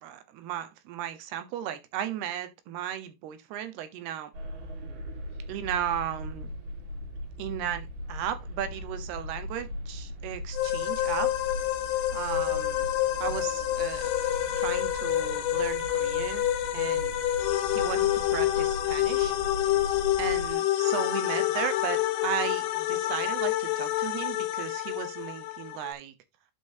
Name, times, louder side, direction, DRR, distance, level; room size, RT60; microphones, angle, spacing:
voice 1, 0.0-4.3 5.5-6.5 7.4-11.3 12.1-12.9 13.2-14.1 14.6-16.5 16.7-17.1 17.7-19.3 20.2-26.1, right 10 dB, 75° right, 2.7 m, -35 dB
sound 1, 4.3-20.5, left 1 dB, 55° right, 3.1 m, -39 dB
sound 2, 10.5-25.9, left 14 dB, 75° left, 2.7 m, -28 dB
12.0 x 5.2 x 2.7 m
omnidirectional pair, 5.1 m